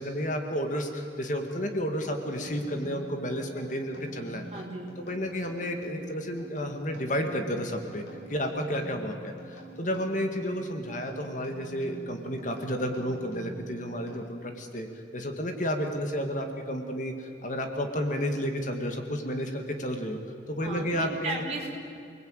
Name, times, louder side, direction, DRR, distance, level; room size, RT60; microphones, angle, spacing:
voice 1, 0.0-4.4 5.0-8.0 8.3-14.9 15.1-20.2 20.5-21.4, equal, 40° left, 4 dB, 2.2 m, -31 dB
sound 1, 2.4-14.6, right 1 dB, 85° left, 7.7 m, -46 dB
voice 2, 4.5-4.9 20.6-21.7, right 2 dB, 35° right, -2 dB, 4.9 m, -35 dB
29.0 x 20.5 x 9.1 m, 2.6 s
head